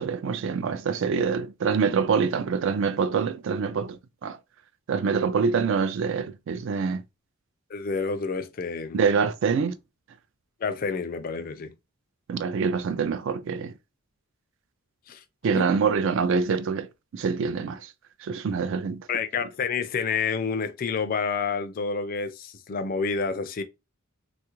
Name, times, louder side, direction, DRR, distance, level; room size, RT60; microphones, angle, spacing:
voice 1, 0.0-4.4 4.9-7.0 8.9-9.7 12.3-13.7 15.4-17.9 18.2-19.1, right 5 dB, 60° right, 0.3 m, -25 dB
voice 2, 7.7-9.0 10.6-11.7 15.1-15.2 15.5-15.6 19.1-23.6, left 5 dB, 40° left, 0.3 m, -29 dB
3.2 x 2.4 x 2.9 m
head